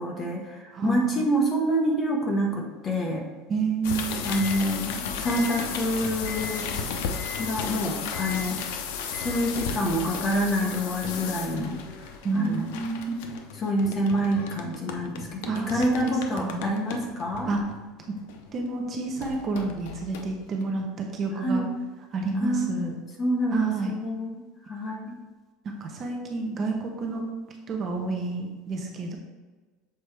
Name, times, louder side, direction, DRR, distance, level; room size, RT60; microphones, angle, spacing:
voice 1, 0.0-3.2 4.2-6.9 7.4-8.6 9.1-11.8 12.3-12.7 13.6-17.5 21.4-21.7 22.4-22.7 23.2-25.1, equal, 20° left, 0 dB, 1.0 m, -27 dB
voice 2, 0.7-1.3 3.5-4.4 12.2-13.3 15.4-16.6 17.5-17.6 18.5-21.6 22.1-23.0 23.5-23.9 25.6-27.2 27.7-29.2, right 3 dB, 30° right, 2 dB, 0.7 m, -29 dB
sound 1, 3.8-18.7 19.2-20.6, left 6 dB, 75° left, 0.6 m, -34 dB
6.8 x 4.3 x 3.3 m, 1.3 s
cardioid pair, 160°, 0 cm